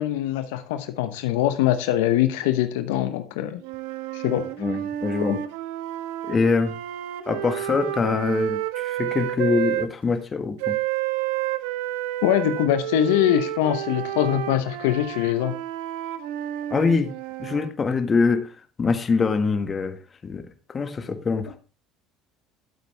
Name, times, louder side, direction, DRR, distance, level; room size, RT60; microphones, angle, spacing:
voice 1, 0.0-3.6 4.1-4.5 5.3-5.4 12.2-15.5, left 12 dB, 85° left, 0.9 m, -23 dB
sound 1, 3.6-9.9 10.6-17.7, right 13 dB, 85° right, 1.0 m, -30 dB
voice 2, 4.6-5.4 6.3-6.8 7.3-10.8 16.7-17.1 17.4-18.5 18.8-20.0 20.2-21.6, left 4 dB, 30° left, 1.6 m, -24 dB
12.5 x 8.2 x 3.4 m
supercardioid pair, 90°, 0 cm